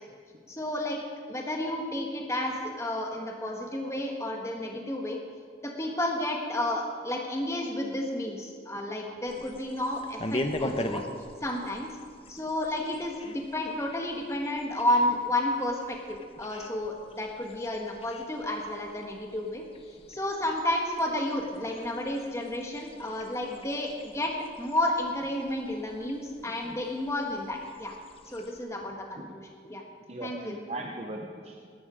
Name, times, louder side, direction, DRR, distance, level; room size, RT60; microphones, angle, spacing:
voice 1, 0.5-1.0 1.3-5.2 5.6-11.0 11.4-11.9 12.3-19.6 20.1-24.3 24.6-27.9 28.3-29.4 29.7-29.8 30.2-30.6, left 1 dB, 15° left, 1 dB, 1.5 m, -31 dB
sound 1, 9.3-28.6, left 1 dB, 30° left, 0.9 m, -42 dB
voice 2, 26.4-26.8 29.2-29.3 30.1-31.6, right 1 dB, 35° right, 1 dB, 0.9 m, -40 dB
20.0 x 12.0 x 5.1 m, 2.2 s
head